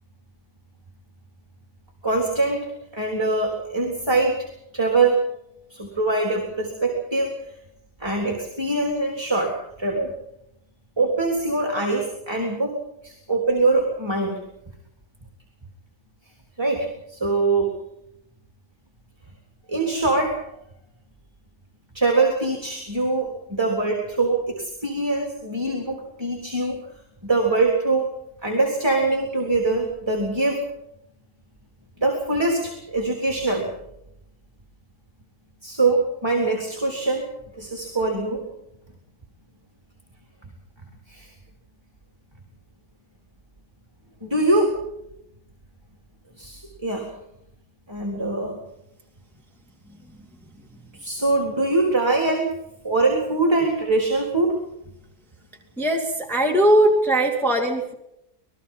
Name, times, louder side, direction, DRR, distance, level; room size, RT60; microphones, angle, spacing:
voice 1, 2.0-2.6 2.9-4.5 4.7-5.2 5.7-7.4 8.0-10.1 11.0-12.8 13.0-14.4 16.6-17.7 19.7-20.4 21.9-26.8 27.2-28.1 28.4-30.6 32.0-33.7 35.6-37.3 37.6-38.4 41.1-41.3 44.2-44.8 46.4-47.1 47.9-48.6 50.9-52.5 52.8-54.6, right 3 dB, 15° right, 1 dB, 3.7 m, -23 dB
voice 2, 55.8-57.9, right 1 dB, ahead, -1 dB, 2.6 m, -19 dB
27.0 x 20.5 x 5.7 m, 0.82 s
omnidirectional pair, 1.6 m